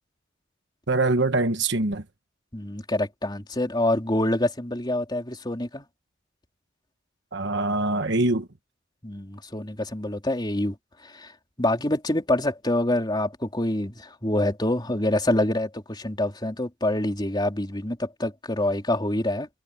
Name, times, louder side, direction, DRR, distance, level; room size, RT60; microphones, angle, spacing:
voice 1, 0.9-2.0 7.3-8.5, right 2 dB, 60° right, 1.3 m, -23 dB
voice 2, 2.5-5.8 9.0-10.7 11.0-11.3 11.6-19.5, left 1 dB, 20° left, 3.6 m, -26 dB
head